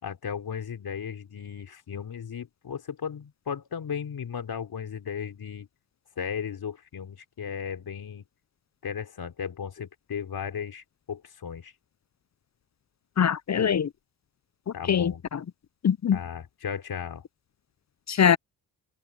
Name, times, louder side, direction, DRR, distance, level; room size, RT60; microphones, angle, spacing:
voice 1, 0.0-5.7 6.2-8.3 8.8-11.7 14.7-15.2 16.1-17.2, left 7 dB, 60° left, 4.0 m, -35 dB
voice 2, 13.2-13.9 14.9-15.4 15.8-16.2 18.1-18.4, left 8 dB, 40° left, 0.8 m, -22 dB
supercardioid pair, 55°, 42 cm